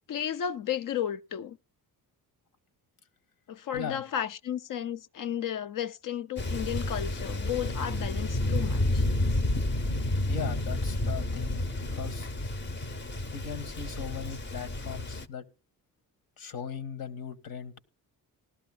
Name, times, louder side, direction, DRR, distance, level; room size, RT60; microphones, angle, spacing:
voice 1, 0.1-1.6 3.5-9.0, left 9 dB, 65° left, 0.7 m, -33 dB
Thunder, 6.4-15.3, left 1 dB, 30° left, 0.8 m, -30 dB
voice 2, 10.3-12.3 13.3-15.4 16.4-17.8, left 7 dB, 80° left, 1.6 m, -38 dB
19.0 x 13.0 x 2.2 m
cardioid pair, 135°, 35 cm